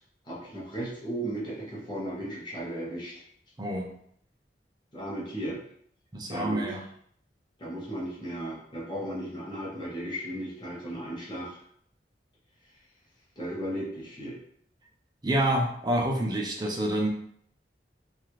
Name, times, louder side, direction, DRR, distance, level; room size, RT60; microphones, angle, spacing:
voice 1, 0.2-3.2 4.9-5.6 6.3-6.8 7.6-11.6 13.4-14.4, right 1 dB, 25° left, -6 dB, 0.9 m, -35 dB
voice 2, 3.6-3.9 6.1-6.8 15.2-17.1, right 1 dB, 25° right, 0 dB, 0.5 m, -27 dB
2.8 x 2.4 x 3.1 m, 0.65 s
head